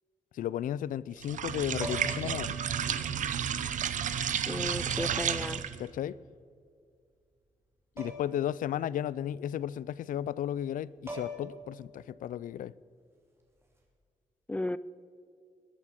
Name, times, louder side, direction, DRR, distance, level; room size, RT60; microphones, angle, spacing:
voice 1, 0.3-2.6 5.8-6.2 8.0-12.7, left 10 dB, 85° left, 0.4 m, -34 dB
sound 1, 1.2-5.9, right 8 dB, 70° right, 0.8 m, -32 dB
sound 2, 1.8-2.4 3.7-3.8 5.0-5.4 8.0-8.4 8.7-8.8 10.6-10.7 11.1-11.6 13.6-13.8, left 1 dB, 20° right, 2.9 m, -41 dB
voice 2, 4.5-5.6 14.5-14.8, left 1 dB, 10° left, 0.3 m, -34 dB
20.5 x 11.0 x 5.7 m
wide cardioid pair, 145°, 13 cm